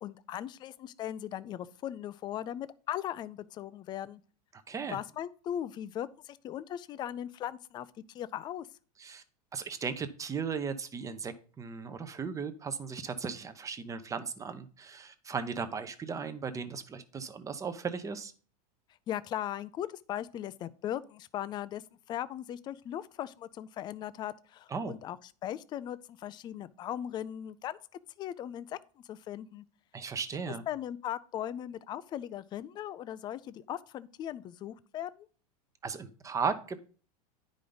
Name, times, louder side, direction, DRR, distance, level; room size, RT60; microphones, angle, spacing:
voice 1, 0.0-4.2 4.9-8.7 19.1-21.8 22.1-25.2 25.4-27.8 28.2-28.8 29.1-29.6 30.7-35.3, left 11 dB, 25° left, 0.3 m, -38 dB
voice 2, 4.7-5.0 9.0-9.2 9.5-18.3 24.7-25.0 29.9-30.6 35.8-36.8, right 5 dB, 15° right, 0.7 m, -36 dB
9.8 x 5.1 x 3.9 m
supercardioid pair, 140°, 20 cm